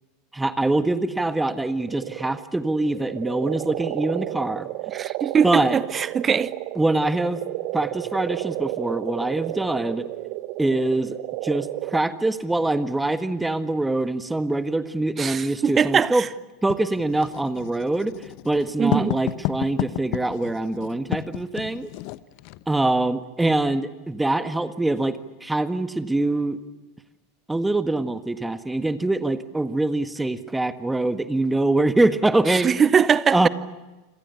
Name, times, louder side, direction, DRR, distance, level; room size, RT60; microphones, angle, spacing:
voice 1, 0.3-4.7 5.4-5.8 6.7-7.4 7.7-10.1 10.6-11.2 11.4-16.2 16.6-18.1 18.4-21.9 22.7-26.6 27.5-32.7 33.3-33.5, right 2 dB, 10° right, 1.7 m, -24 dB
sound 1, 1.8-12.0, right 17 dB, 50° right, 1.0 m, -32 dB
voice 2, 4.9-6.5 15.2-16.3 18.8-19.1 32.5-33.5, right 7 dB, 25° right, 1.0 m, -21 dB
Writing, 16.7-22.6, left 18 dB, 50° left, 1.0 m, -31 dB
28.5 x 26.5 x 7.1 m
figure-of-eight pair, 85°, 0 cm